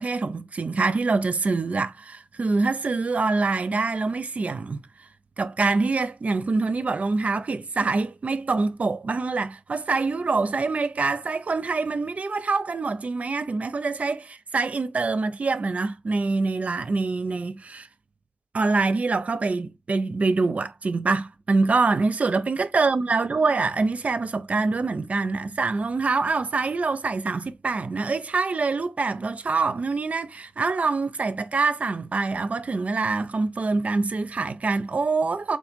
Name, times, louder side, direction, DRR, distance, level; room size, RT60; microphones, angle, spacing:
voice 1, 0.0-4.8 5.4-17.9 18.5-35.6, right 3 dB, 75° right, 0.6 m, -25 dB
3.9 x 3.2 x 3.6 m
wide cardioid pair, 75°, 2 cm